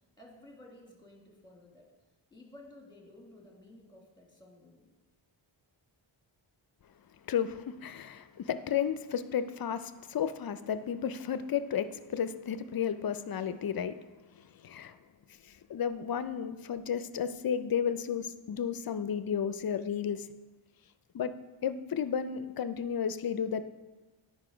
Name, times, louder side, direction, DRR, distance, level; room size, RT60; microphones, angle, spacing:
voice 1, 0.2-1.9 2.3-4.9, left 1 dB, 10° left, -2 dB, 1.8 m, -54 dB
voice 2, 7.3-14.0 14.3-15.0 15.4-20.3 21.1-21.3 21.6-23.6, left 8 dB, 50° left, 12 dB, 0.5 m, -33 dB
9.6 x 5.3 x 5.0 m, 1.2 s
wide cardioid pair, 135°, 50 cm